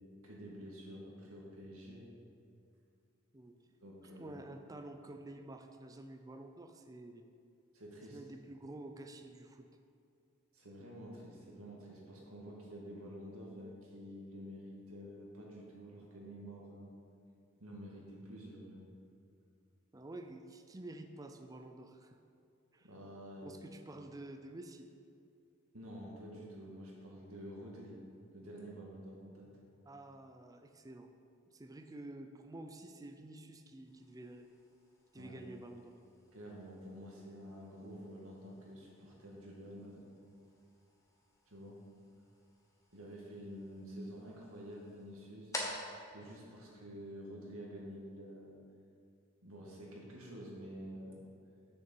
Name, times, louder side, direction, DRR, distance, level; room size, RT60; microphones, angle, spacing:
voice 1, 0.0-2.0 3.8-4.4 7.7-8.2 10.5-16.9 17.6-18.9 22.8-23.5 25.7-28.0 28.3-29.5 35.2-35.5 36.3-40.1 41.5-41.8 42.9-45.5 46.1-48.6 49.4-51.3, equal, 85° right, -3 dB, 2.2 m, -49 dB
voice 2, 4.2-7.3 8.1-9.7 19.9-22.2 22.7-22.9 23.4-24.9 29.9-31.1 31.5-34.5 35.1-36.0, right 2 dB, 15° right, 6 dB, 0.4 m, -50 dB
sound 1, 33.8-47.5, left 1 dB, 15° left, 1.1 m, -52 dB
6.9 x 6.7 x 6.8 m, 2.5 s
head